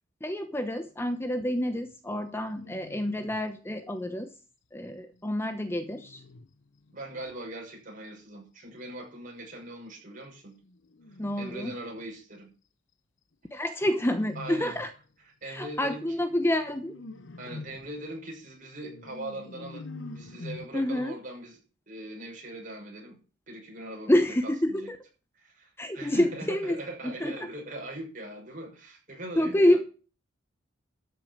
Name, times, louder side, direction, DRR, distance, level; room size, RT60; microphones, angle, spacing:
voice 1, 0.2-4.3 4.7-6.2 11.2-11.7 13.5-14.9 15.4-16.9 20.7-21.1 24.1-25.0 25.8-26.8 27.0-27.5 29.4-29.8, left 1 dB, 10° left, 9 dB, 0.9 m, -28 dB
sound 1, 1.4-1.9 2.5-3.5 4.9-7.4 10.6-12.2 13.8-15.1 15.8-20.7, left 2 dB, 70° left, 0.9 m, -46 dB
voice 2, 6.9-10.6 11.4-12.5 14.3-14.7 15.4-16.1 17.4-19.9 20.1-21.6 21.9-23.2 23.5-24.9 25.4-29.8, right 1 dB, 45° right, 0 dB, 6.2 m, -41 dB
13.0 x 6.8 x 7.3 m, 0.36 s
head